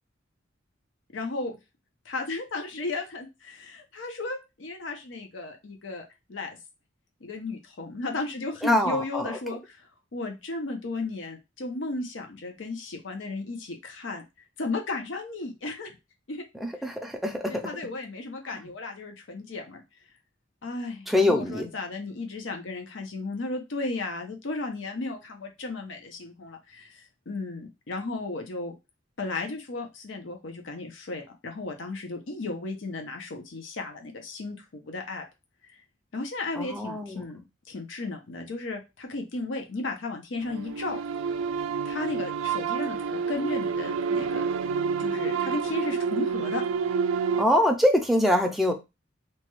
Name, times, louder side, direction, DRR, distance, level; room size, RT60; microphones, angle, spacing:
voice 1, 1.1-1.6 2.0-6.6 7.2-15.9 16.3-16.4 17.5-19.8 20.6-28.7 29.2-35.2 35.6-35.8 36.1-37.4 37.7-41.0 41.8-44.5 45.0-46.6, left 3 dB, 70° left, 4 dB, 0.6 m, -34 dB
voice 2, 8.6-9.4 16.6-17.6 18.6-18.7 21.1-21.7 36.6-37.2 47.4-48.7, left 1 dB, ahead, 2 dB, 0.4 m, -24 dB
sound 1, 40.4-47.4, right 6 dB, 75° right, 0.3 m, -28 dB
2.9 x 2.2 x 3.0 m, 0.25 s
head